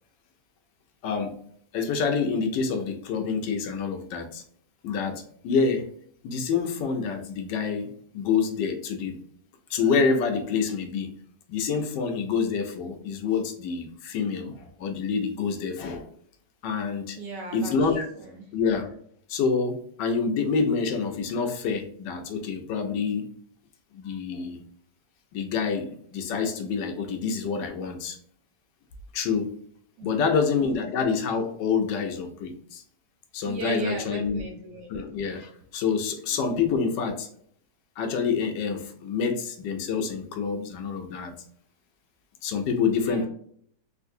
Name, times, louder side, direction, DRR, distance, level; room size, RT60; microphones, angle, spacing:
voice 1, 1.0-1.3 1.7-4.4 4.8-5.9 6.2-9.2 9.7-11.1 11.5-16.0 16.6-17.2 17.5-18.1 18.5-18.9 19.3-23.3 23.9-24.6 25.3-28.2 29.1-29.5 30.0-32.8 33.3-34.4 34.9-37.3 38.0-41.3 42.4-43.3, left 5 dB, 90° left, 6 dB, 1.3 m, -27 dB
voice 2, 17.2-18.5 30.0-30.4 33.4-34.9 36.3-36.4 42.9-43.3, right 3 dB, 80° right, 1 dB, 1.5 m, -37 dB
3.7 x 2.6 x 2.5 m, 0.63 s
omnidirectional pair, 1.8 m